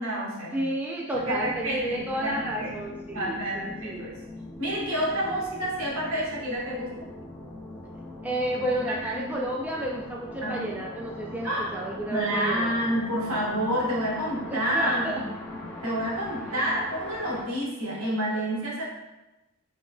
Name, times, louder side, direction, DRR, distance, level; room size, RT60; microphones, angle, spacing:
voice 1, 0.0-0.6 1.2-2.7 3.1-4.1 4.6-6.9 8.9-9.2 10.4-10.7 11.4-11.6 12.1-18.8, equal, 70° right, -5 dB, 1.5 m, -29 dB
voice 2, 0.5-4.1 8.2-12.9 14.5-15.2, right 1 dB, 5° right, -3 dB, 0.4 m, -31 dB
sound 1, 1.1-17.4, left 2 dB, 10° left, 1.0 m, -41 dB
6.1 x 3.7 x 2.3 m, 1.0 s
head